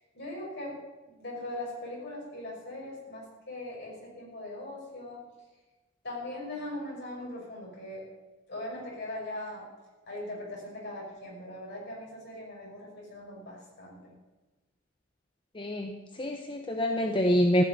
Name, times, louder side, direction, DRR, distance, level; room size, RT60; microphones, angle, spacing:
voice 1, 0.1-0.8 1.1-5.2 6.0-8.1 8.5-9.7 10.1-14.1, left 1 dB, 55° left, -3 dB, 5.8 m, -40 dB
voice 2, 15.6-17.6, equal, 25° left, 4 dB, 0.8 m, -26 dB
15.0 x 6.4 x 9.5 m, 1.2 s
head